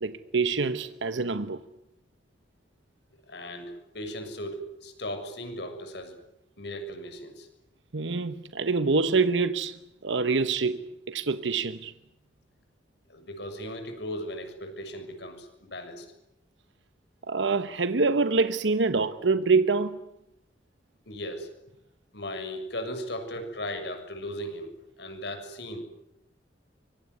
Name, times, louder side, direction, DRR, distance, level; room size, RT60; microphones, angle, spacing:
voice 1, 0.0-1.6 7.9-11.9 17.3-20.0, right 4 dB, 80° right, 1.1 m, -26 dB
voice 2, 3.3-6.2 6.6-7.5 13.1-16.1 21.1-21.5 22.1-24.7 25.0-25.8, left 1 dB, 65° left, 6.8 m, -37 dB
25.0 x 23.5 x 9.6 m
head